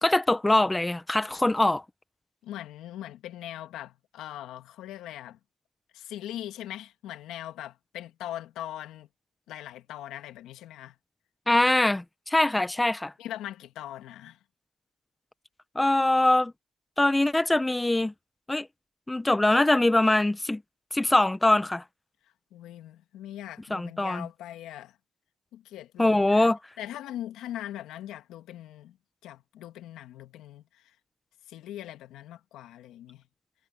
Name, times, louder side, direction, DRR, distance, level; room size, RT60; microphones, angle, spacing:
voice 1, 0.0-1.8 11.5-13.1 15.7-16.5 17.0-18.1 18.5-18.7 19.1-20.6 20.9-21.8 23.7-24.3 26.0-26.6, left 2 dB, 10° left, 1.1 m, -23 dB
voice 2, 2.4-5.4 5.9-9.1 9.5-11.0 13.2-14.4 22.5-25.0 25.5-26.5 26.8-29.0 29.2-31.0 31.5-33.2, left 12 dB, 90° left, 2.0 m, -41 dB
cardioid pair, 90°, 0 cm